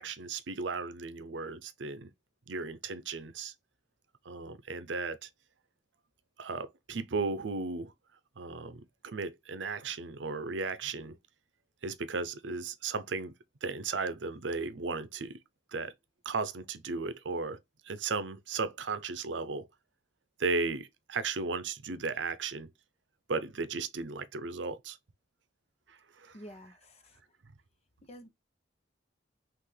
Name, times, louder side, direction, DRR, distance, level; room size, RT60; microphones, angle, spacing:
voice 1, 0.0-2.1 2.5-3.5 4.2-5.3 6.4-7.9 8.4-11.2 11.8-13.3 13.6-15.4 15.7-15.9 16.2-17.6 17.8-19.7 20.4-22.7 23.3-25.0 25.9-26.3, right 4 dB, 85° right, 0.6 m, -35 dB
voice 2, 26.3-27.3 28.0-28.3, equal, 35° left, 0.8 m, -50 dB
5.8 x 2.5 x 3.2 m
head